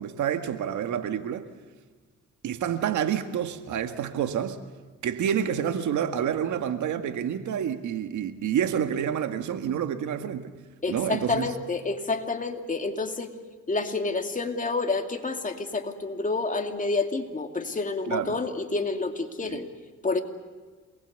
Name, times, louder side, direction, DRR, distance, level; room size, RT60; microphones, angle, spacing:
voice 1, 0.0-1.5 2.4-4.6 5.0-10.5 10.9-11.5 18.1-18.3 19.5-19.6, right 9 dB, 75° right, 1.8 m, -28 dB
voice 2, 10.8-13.3 13.7-19.7 20.0-20.2, left 3 dB, 25° left, 2.7 m, -29 dB
28.0 x 20.5 x 8.2 m
cardioid pair, 90°, 30 cm